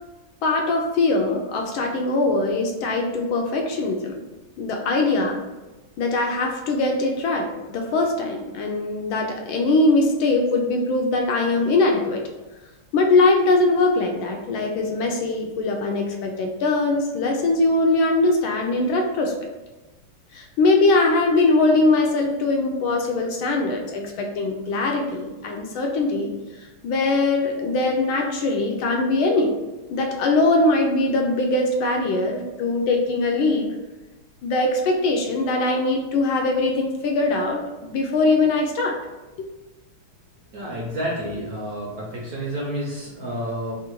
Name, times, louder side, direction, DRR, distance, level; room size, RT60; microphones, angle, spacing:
voice 1, 0.4-4.2 4.6-5.4 6.0-12.2 12.9-19.3 20.3-26.3 26.8-29.6 29.9-33.7 34.4-39.0, left 2 dB, 75° left, 2 dB, 1.3 m, -21 dB
voice 2, 40.5-43.8, equal, 65° right, -4 dB, 1.0 m, -30 dB
3.7 x 2.5 x 4.4 m, 1.1 s
omnidirectional pair, 2.4 m